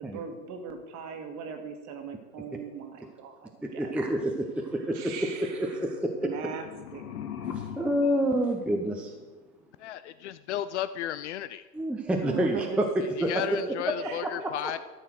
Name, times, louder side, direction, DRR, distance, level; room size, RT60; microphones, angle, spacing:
voice 1, 0.0-4.0 4.9-5.6 6.2-6.6 6.9-7.1 12.2-12.8 14.0-14.3, right 7 dB, 35° right, 5 dB, 1.8 m, -39 dB
voice 2, 3.6-5.1 5.4-6.3 7.4-9.4 11.7-12.8 13.2-13.6 14.2-14.3, right 1 dB, ahead, 2 dB, 0.7 m, -28 dB
sound 1, 6.2-9.3, left 8 dB, 65° left, 1.4 m, -41 dB
voice 3, 9.8-11.7 13.3-14.8, left 12 dB, 50° left, 14 dB, 0.5 m, -34 dB
13.0 x 5.7 x 6.3 m, 1.2 s
hypercardioid pair, 110°, 48 cm